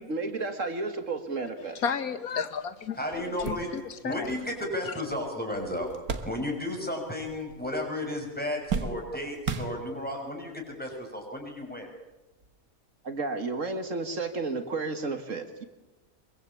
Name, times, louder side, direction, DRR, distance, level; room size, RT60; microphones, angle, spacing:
voice 1, 0.0-1.8 13.0-15.6, right 3 dB, 60° right, 8 dB, 2.1 m, -32 dB
voice 2, 1.8-4.3, left 6 dB, 85° left, 11 dB, 1.8 m, -33 dB
sound 1, 2.6-2.7 3.1-6.9 7.2-7.9 8.2-10.3 11.0-11.1 12.4-12.6, right 5 dB, 80° right, 2.1 m, -36 dB
voice 3, 3.0-3.7 4.0-5.9 6.3-11.9, left 1 dB, 5° left, 1 dB, 6.2 m, -33 dB
24.5 x 23.0 x 8.6 m, 1.1 s
omnidirectional pair, 1.5 m